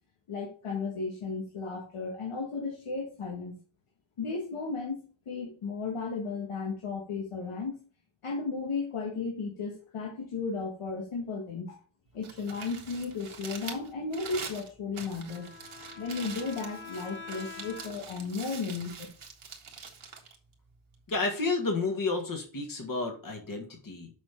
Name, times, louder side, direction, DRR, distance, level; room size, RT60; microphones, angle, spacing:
voice 1, 0.3-3.6 4.2-7.8 8.2-11.8 12.1-15.5 15.9-19.0, left 4 dB, 90° left, 0 dB, 1.7 m, -34 dB
Crumpling crinkling, 12.1-21.2, right 5 dB, 75° right, 1.8 m, -45 dB
Bowed string instrument, 15.2-18.3, left 5 dB, 25° left, 1.5 m, -46 dB
voice 2, 21.1-24.1, left 3 dB, 40° left, 3 dB, 1.7 m, -31 dB
7.5 x 5.4 x 4.4 m, 0.38 s
wide cardioid pair, 130°, 49 cm